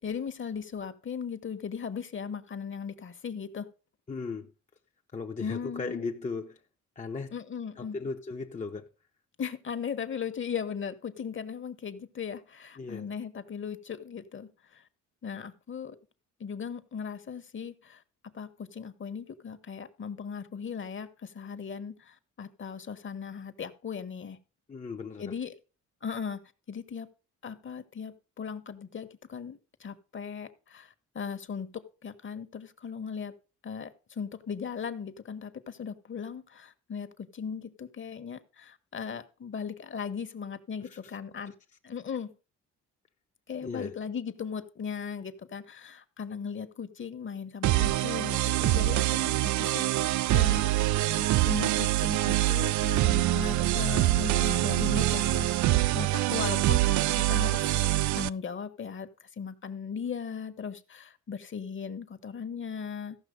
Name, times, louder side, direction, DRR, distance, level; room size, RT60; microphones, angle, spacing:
voice 1, 0.0-3.7 5.4-6.1 7.3-8.0 9.4-14.8 15.2-16.0 16.4-24.4 25.2-25.5 26.0-27.1 27.4-33.3 33.6-41.5 41.8-42.3 43.5-50.7 51.2-57.9 58.1-63.2, left 6 dB, 40° left, 1.3 m, -38 dB
voice 2, 4.1-4.5 5.1-6.6 7.0-7.3 7.8-8.9 12.8-13.1 24.7-25.3 40.8-41.1 41.5-41.6 43.6-43.9, left 4 dB, 25° left, 0.8 m, -37 dB
sound 1, 47.6-58.3, right 16 dB, 70° right, 0.5 m, -25 dB
15.0 x 5.9 x 5.2 m
cardioid pair, 90°, 30 cm